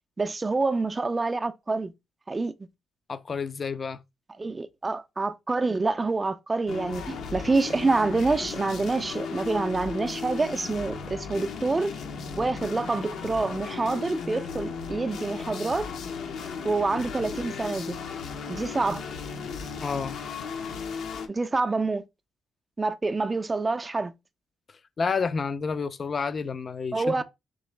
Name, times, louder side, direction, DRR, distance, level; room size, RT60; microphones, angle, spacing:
voice 1, 0.2-1.9 2.3-2.5 4.4-11.9 12.4-15.9 16.6-18.0 18.5-19.0 21.3-22.0 22.8-24.1 26.9-27.2, right 3 dB, 25° right, 0.4 m, -27 dB
voice 2, 3.1-4.0 19.8-20.1 25.0-27.2, left 5 dB, 40° left, 0.4 m, -29 dB
sound 1, 6.7-21.3, left 5 dB, 75° left, 0.8 m, -36 dB
3.8 x 3.1 x 3.2 m
cardioid pair, 90°, 0 cm